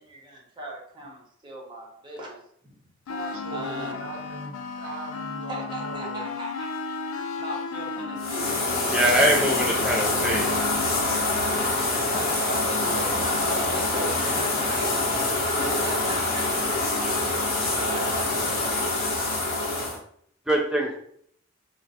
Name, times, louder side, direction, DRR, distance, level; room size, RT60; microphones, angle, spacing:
voice 1, 0.0-2.8 3.5-4.1 5.5-6.7 7.4-8.5 12.1-14.9 15.4-16.4 17.3-18.5, right 1 dB, 25° right, -2 dB, 0.8 m, -38 dB
sound 1, 3.1-11.9, left 4 dB, 90° left, 0.3 m, -35 dB
voice 2, 3.1-6.3 11.7-14.6, right 1 dB, 85° right, 0 dB, 0.8 m, -39 dB
sound 2, 8.2-20.0, left 2 dB, 50° left, 0.8 m, -25 dB
voice 3, 8.9-10.5 20.5-21.0, right 1 dB, 5° right, -2 dB, 0.4 m, -23 dB
2.5 x 2.2 x 3.9 m, 0.66 s
head